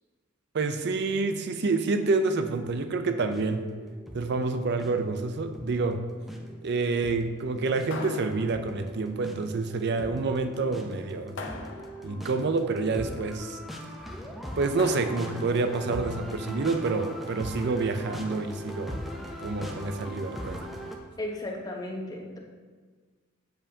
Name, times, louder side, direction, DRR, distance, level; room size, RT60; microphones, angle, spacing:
voice 1, 0.5-3.6 4.1-6.0 6.6-11.4 12.0-13.6 14.6-19.0 19.4-20.6, right 3 dB, 55° right, 8 dB, 0.5 m, -28 dB
sound 1, 3.3-21.0, equal, ahead, 0.6 m, -41 dB
sound 2, 7.9-9.0 11.4-12.3 14.8-15.7, left 3 dB, 65° left, 0.6 m, -40 dB
voice 2, 21.2-22.4, left 1 dB, 20° left, 0 dB, 0.9 m, -35 dB
7.7 x 7.2 x 2.8 m, 1.5 s
head